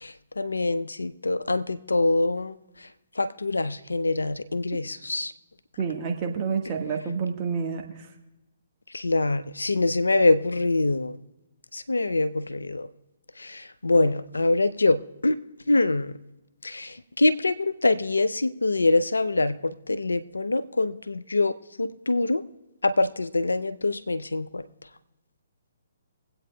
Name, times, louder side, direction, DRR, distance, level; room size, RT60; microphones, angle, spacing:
voice 1, 0.0-2.5 3.2-5.3 8.9-11.2 11.7-12.9 13.4-15.4 15.7-16.1 16.6-22.4 22.8-24.6, left 2 dB, 80° left, 13 dB, 0.5 m, -24 dB
voice 2, 5.8-8.1, right 5 dB, 30° right, 2 dB, 1.4 m, -29 dB
23.5 x 8.5 x 2.2 m, 0.95 s
figure-of-eight pair, 135°, 0 cm